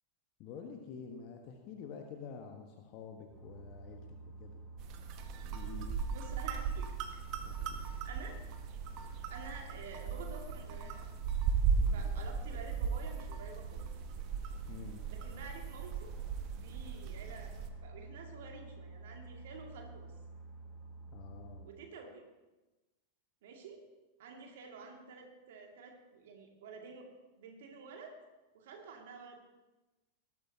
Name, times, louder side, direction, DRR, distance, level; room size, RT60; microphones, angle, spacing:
voice 1, 0.4-4.0 4.4-4.6 5.4-5.9 7.4-7.8 11.7-12.2 14.7-15.0 21.1-21.7, left 6 dB, 40° left, 4 dB, 1.2 m, -48 dB
sound 1, 3.3-21.6, right 3 dB, 5° right, 5.3 m, -50 dB
sound 2, 4.8-17.7, right 6 dB, 40° right, 1.1 m, -37 dB
voice 2, 6.1-7.2 7.8-8.4 9.3-11.1 11.9-13.8 14.7-14.8 15.1-16.2 16.5-20.1 21.6-22.2 23.4-23.9 24.2-28.2 28.5-29.4, right 4 dB, 55° right, 2 dB, 2.2 m, -50 dB
18.5 x 12.5 x 2.8 m, 1.1 s
figure-of-eight pair, 90°, 0 cm